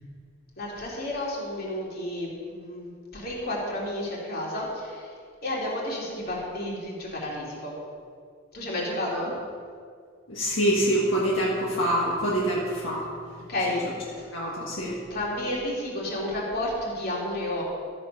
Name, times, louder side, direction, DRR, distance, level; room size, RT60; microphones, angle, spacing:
voice 1, 0.6-5.1 5.4-7.7 8.5-9.3 13.5-14.2 15.1-17.6, left 1 dB, 50° left, -4 dB, 2.9 m, -31 dB
voice 2, 10.3-13.0 14.3-15.0, right 1 dB, 75° left, -5 dB, 1.8 m, -25 dB
13.0 x 7.7 x 5.5 m, 2.1 s
head